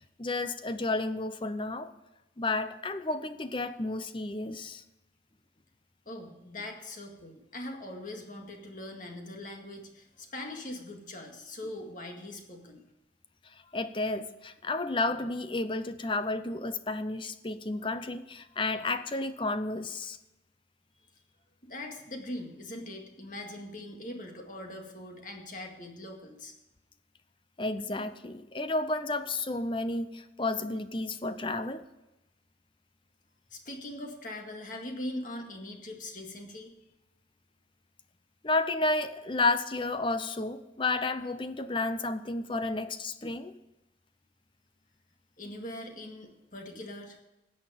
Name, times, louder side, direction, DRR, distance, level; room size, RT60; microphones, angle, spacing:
voice 1, 0.2-1.9 2.4-4.8 13.4-20.2 27.6-31.9 38.4-43.5, left 2 dB, 25° left, 11 dB, 0.6 m, -31 dB
voice 2, 6.1-12.8 21.6-26.5 33.5-36.7 45.4-47.2, left 1 dB, 45° left, 2 dB, 2.0 m, -41 dB
13.5 x 8.6 x 5.1 m, 0.97 s
head